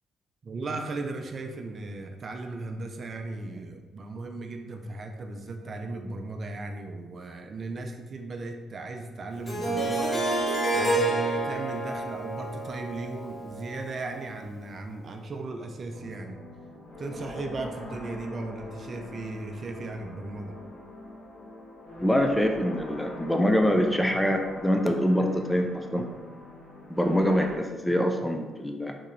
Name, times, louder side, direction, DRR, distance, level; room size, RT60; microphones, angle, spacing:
voice 1, 0.4-10.1 10.7-16.4 17.0-20.6, right 2 dB, 45° right, 4 dB, 0.5 m, -36 dB
Harp, 9.5-14.4, right 2 dB, 25° left, 1.2 m, -29 dB
sound 1, 15.9-27.6, left 1 dB, 75° left, 1.0 m, -43 dB
voice 2, 22.0-26.1 26.9-29.0, equal, 5° left, 4 dB, 0.5 m, -24 dB
4.2 x 3.8 x 3.2 m, 1.3 s
cardioid pair, 90°, 0 cm